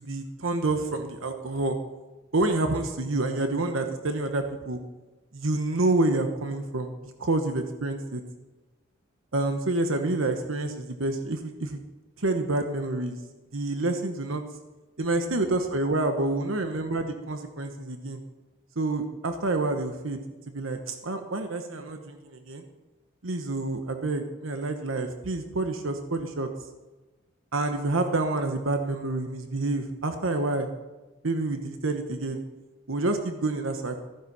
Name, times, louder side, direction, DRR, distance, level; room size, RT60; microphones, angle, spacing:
voice 1, 0.0-1.8 2.3-4.8 5.3-8.2 9.3-11.8 12.2-13.2 13.5-14.4 15.0-18.2 18.8-20.2 20.5-22.6 23.2-26.5 27.5-30.7 31.2-32.4 32.9-33.9, right 2 dB, 80° right, 6 dB, 1.1 m, -28 dB
15.0 x 10.5 x 5.6 m, 1.2 s
head